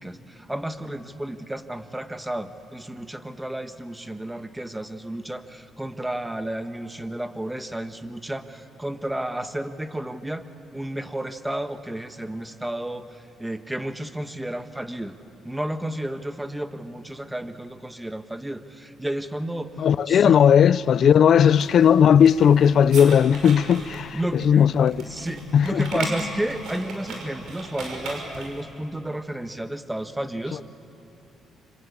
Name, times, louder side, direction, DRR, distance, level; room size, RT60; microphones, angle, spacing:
voice 1, 0.0-10.4 10.7-15.1 15.4-19.8 20.1-20.4 21.0-21.2 24.1-24.7 25.0-30.6, right 1 dB, 10° right, 1.3 m, -32 dB
voice 2, 19.8-24.2 24.4-25.0 25.5-26.0, left 8 dB, 60° left, 0.6 m, -17 dB
sound 1, 21.4-28.6, right 2 dB, 75° right, 5.6 m, -37 dB
26.5 x 25.5 x 8.6 m
cardioid pair, 90°, 0 cm